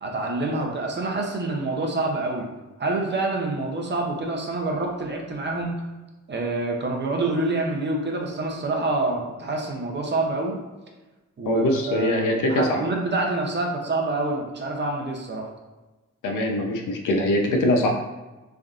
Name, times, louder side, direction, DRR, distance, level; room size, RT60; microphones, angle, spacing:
voice 1, 0.0-2.5 2.8-5.7 6.3-10.6 11.4-15.5, right 2 dB, 35° right, 0 dB, 0.6 m, -27 dB
voice 2, 11.5-12.8 16.2-17.9, left 1 dB, 90° left, 2 dB, 0.6 m, -22 dB
3.4 x 2.5 x 2.4 m, 1.1 s
cardioid pair, 100°, 30 cm